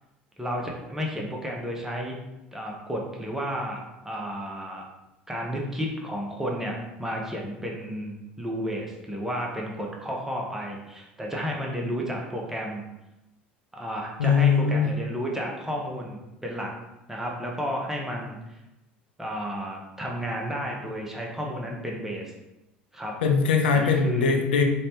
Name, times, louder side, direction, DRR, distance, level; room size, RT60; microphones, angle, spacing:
voice 1, 0.4-2.1 2.5-4.8 5.3-12.9 13.7-16.7 17.1-18.4 19.2-22.3 22.9-23.2 23.7-24.3, equal, 5° right, -1 dB, 0.7 m, -32 dB
voice 2, 14.2-14.8 23.2-24.6, left 5 dB, 75° left, 4 dB, 0.4 m, -21 dB
3.1 x 2.1 x 2.9 m, 0.96 s
figure-of-eight pair, 70°, 6 cm